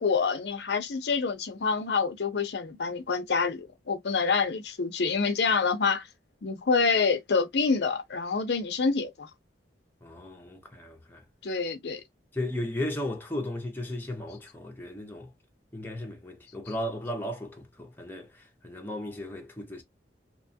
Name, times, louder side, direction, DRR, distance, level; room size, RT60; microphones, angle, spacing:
voice 1, 0.0-6.1 6.4-9.3 11.4-12.0, left 5 dB, 70° left, 0.6 m, -27 dB
voice 2, 10.0-11.2 12.3-15.3 15.7-18.3 18.6-19.8, left 1 dB, 10° left, 0.6 m, -35 dB
2.9 x 2.2 x 2.6 m
head